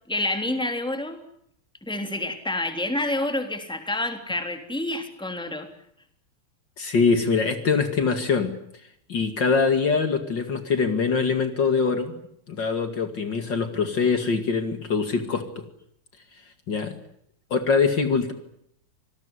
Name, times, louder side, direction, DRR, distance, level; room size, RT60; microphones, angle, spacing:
voice 1, 0.1-1.2 1.8-5.7, left 1 dB, ahead, 6 dB, 3.2 m, -28 dB
voice 2, 6.8-8.5 9.1-12.1 12.5-15.6 16.7-16.9 17.5-18.3, left 5 dB, 55° left, 8 dB, 2.8 m, -23 dB
27.0 x 19.5 x 9.8 m, 0.72 s
omnidirectional pair, 2.4 m